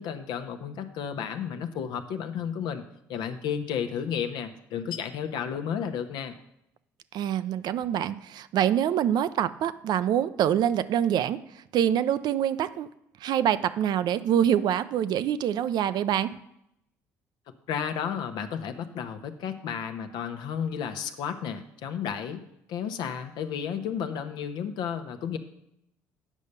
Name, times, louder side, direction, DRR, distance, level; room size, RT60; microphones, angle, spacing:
voice 1, 0.0-2.8 3.1-6.3 17.7-22.4 22.7-25.4, left 8 dB, 65° left, 8 dB, 0.9 m, -32 dB
voice 2, 7.1-11.4 11.7-12.9 13.2-16.3, right 10 dB, 60° right, 13 dB, 0.5 m, -25 dB
8.4 x 5.4 x 6.7 m, 0.80 s
hypercardioid pair, 65°, 8 cm